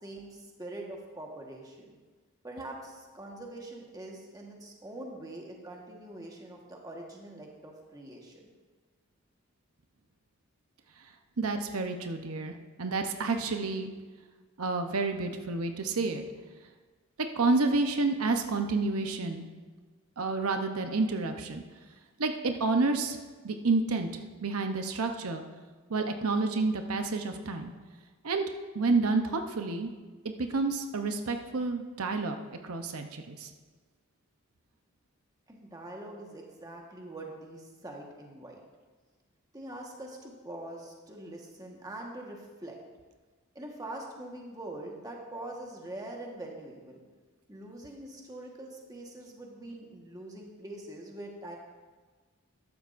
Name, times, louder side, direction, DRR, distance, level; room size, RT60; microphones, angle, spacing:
voice 1, 0.0-1.9 2.4-8.5 35.5-38.6 39.5-42.8 43.5-47.0 47.5-51.6, right 1 dB, 15° right, -1 dB, 1.3 m, -43 dB
voice 2, 11.4-12.5 12.8-13.9 14.6-16.2 17.4-19.5 20.2-21.6 22.2-23.2 23.4-24.1 24.4-25.4 25.9-27.7 28.2-28.4 28.7-29.9 30.4-33.5, right 3 dB, 85° right, 5 dB, 0.8 m, -29 dB
14.0 x 11.5 x 2.6 m, 1.4 s
head